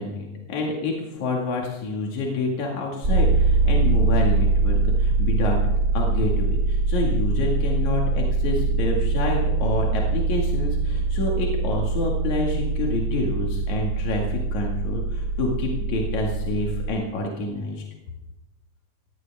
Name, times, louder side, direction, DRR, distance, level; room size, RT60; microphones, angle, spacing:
voice 1, 0.0-5.6 5.9-17.8, left 2 dB, 70° left, -1 dB, 3.5 m, -28 dB
sound 1, 3.0-16.9, right 3 dB, 30° right, 3.0 m, -23 dB
19.0 x 17.5 x 3.6 m, 1.1 s
omnidirectional pair, 3.5 m